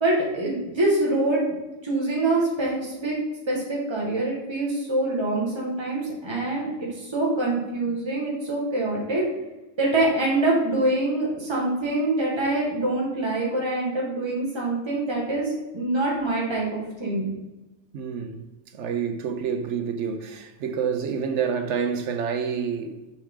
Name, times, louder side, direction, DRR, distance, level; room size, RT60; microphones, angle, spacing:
voice 1, 0.0-1.6 1.8-3.2 3.5-9.2 9.8-17.3, right 2 dB, 20° right, 1.7 m, -25 dB
voice 2, 17.9-18.5 18.7-23.0, right 6 dB, 60° right, 0.9 m, -28 dB
7.0 x 4.8 x 3.7 m
omnidirectional pair, 1.5 m